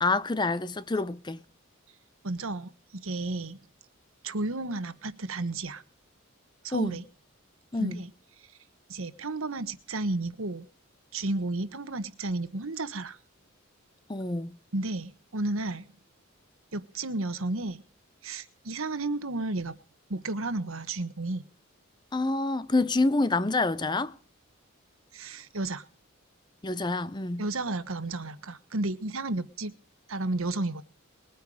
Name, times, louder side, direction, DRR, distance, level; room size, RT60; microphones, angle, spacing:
voice 1, 0.0-1.4 6.7-7.0 7.7-8.0 14.1-14.6 22.1-24.1 26.6-27.4, left 3 dB, 20° left, 0.6 m, -27 dB
voice 2, 2.2-2.7 3.0-3.6 4.2-5.8 6.6-7.0 7.8-8.1 8.9-10.7 11.1-13.2 14.7-15.9 16.7-17.8 18.2-19.8 20.1-21.4 25.1-25.8 27.4-29.7 30.1-30.8, right 2 dB, 80° right, 1.4 m, -32 dB
21.0 x 9.3 x 4.9 m
head